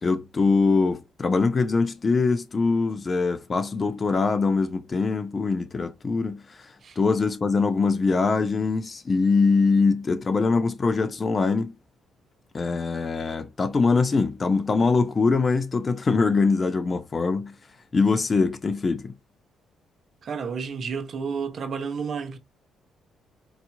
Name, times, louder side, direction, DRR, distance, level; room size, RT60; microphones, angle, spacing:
voice 1, 0.0-6.4 7.0-11.7 12.5-17.5 17.9-19.1, left 4 dB, 35° left, 0.6 m, -23 dB
voice 2, 20.2-22.4, right 6 dB, 50° right, 0.7 m, -31 dB
4.1 x 2.9 x 2.3 m
cardioid pair, 90°, 0 cm